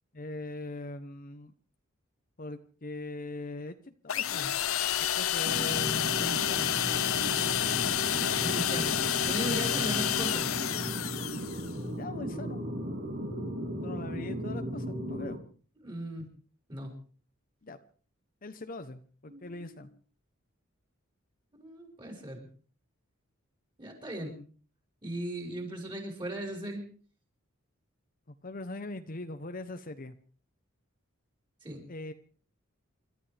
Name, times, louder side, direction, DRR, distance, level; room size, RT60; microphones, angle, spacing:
voice 1, 0.1-1.5 2.4-4.5 5.0-6.7 9.4-10.0 11.9-12.6 13.8-15.4 17.6-17.8 18.4-19.9 28.3-30.2 31.9-32.1, left 2 dB, 40° left, 9 dB, 0.9 m, -41 dB
sound 1, 4.1-11.7, left 11 dB, 90° left, 0.7 m, -29 dB
sound 2, 5.5-15.4, equal, 50° right, 3.1 m, -36 dB
voice 2, 8.0-9.0 9.3-10.5 15.8-16.3 16.7-16.9 19.3-19.9 21.5-22.5 23.8-24.4 25.0-26.8 31.6-31.8, right 1 dB, 25° right, 1 dB, 5.2 m, -38 dB
29.0 x 13.0 x 3.4 m, 0.42 s
head